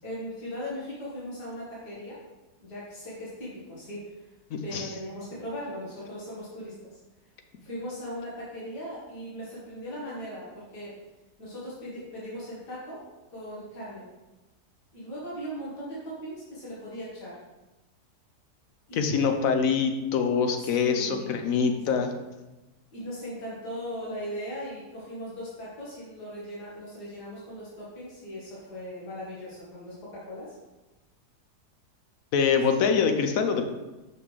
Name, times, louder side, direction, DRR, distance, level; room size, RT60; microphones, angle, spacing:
voice 1, 0.0-2.2 2.6-4.2 4.6-7.0 7.6-11.0 11.4-13.0 13.3-14.1 14.9-17.4 18.9-19.3 20.6-22.2 22.9-30.6, equal, 90° left, -7 dB, 2.1 m, -39 dB
voice 2, 19.0-22.1 32.3-33.7, left 6 dB, 65° left, 6 dB, 1.0 m, -24 dB
5.8 x 5.6 x 3.1 m, 1.1 s
omnidirectional pair, 1.7 m